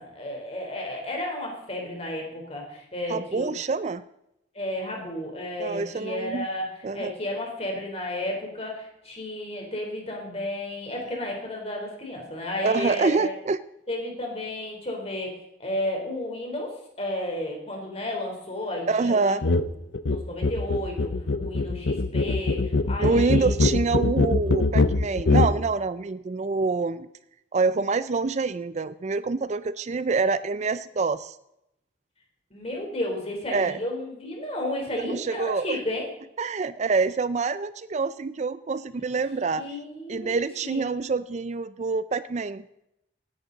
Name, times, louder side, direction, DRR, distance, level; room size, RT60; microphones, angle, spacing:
voice 1, 0.0-3.5 4.5-13.3 13.9-15.3 15.6-19.4 20.1-23.5 32.5-36.1 39.5-40.8, left 1 dB, 35° left, 1 dB, 3.8 m, -33 dB
voice 2, 3.1-4.0 5.6-6.5 6.8-7.1 12.6-13.6 18.9-19.5 23.0-27.1 27.5-31.4 33.5-33.8 35.0-35.8 36.4-39.6 40.1-42.6, right 4 dB, 40° right, 15 dB, 0.4 m, -26 dB
sound 1, 19.4-19.7 19.9-25.6, left 3 dB, 75° left, 0.6 m, -23 dB
16.5 x 11.0 x 4.0 m, 0.83 s
head